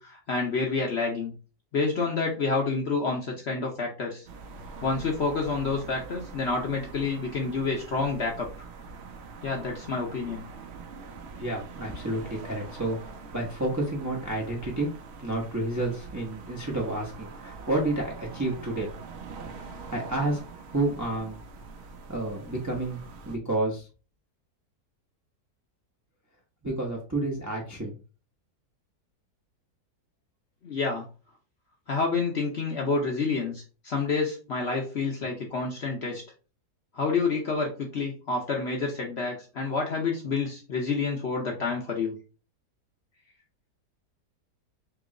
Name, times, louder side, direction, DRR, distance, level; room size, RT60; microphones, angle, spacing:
voice 1, 0.0-1.3 1.7-4.3 4.8-8.5 9.4-10.4 30.6-31.0 31.9-36.2 36.9-42.1, left 4 dB, 55° left, 0 dB, 0.7 m, -28 dB
sound 1, 4.3-23.4, right 4 dB, 90° right, 0.5 m, -44 dB
voice 2, 11.4-13.0 13.3-14.9 15.2-18.9 19.9-20.4 20.7-21.4 22.1-23.9 26.6-27.9, right 2 dB, 20° right, -1 dB, 0.4 m, -30 dB
3.0 x 3.0 x 3.6 m, 0.35 s
omnidirectional pair, 1.8 m